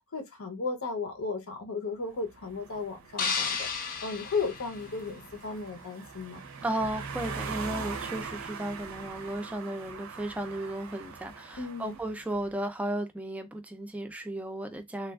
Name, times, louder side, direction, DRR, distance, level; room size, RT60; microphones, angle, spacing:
voice 1, 0.1-3.7 4.0-6.4 11.6-12.0, left 4 dB, 75° left, 0.7 m, -35 dB
sound 1, 2.2-12.5, right 5 dB, 70° right, 0.5 m, -42 dB
sound 2, 3.2-5.5, left 5 dB, 40° left, 0.6 m, -33 dB
voice 2, 6.6-15.1, right 1 dB, 5° right, 0.4 m, -34 dB
3.2 x 2.3 x 2.3 m
head